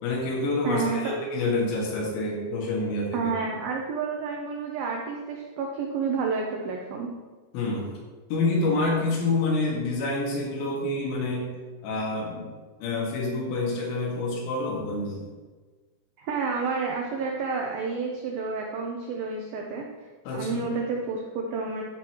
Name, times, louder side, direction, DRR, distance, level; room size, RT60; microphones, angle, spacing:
voice 1, 0.0-3.3 7.5-7.9 8.3-11.5 11.8-12.5 12.8-15.2 20.3-20.7, left 2 dB, 85° left, -3 dB, 4.3 m, -27 dB
voice 2, 0.6-1.2 3.1-7.1 16.2-19.9 20.3-21.8, right 4 dB, 85° right, 0 dB, 2.1 m, -30 dB
14.0 x 6.3 x 3.0 m, 1.4 s
omnidirectional pair, 5.2 m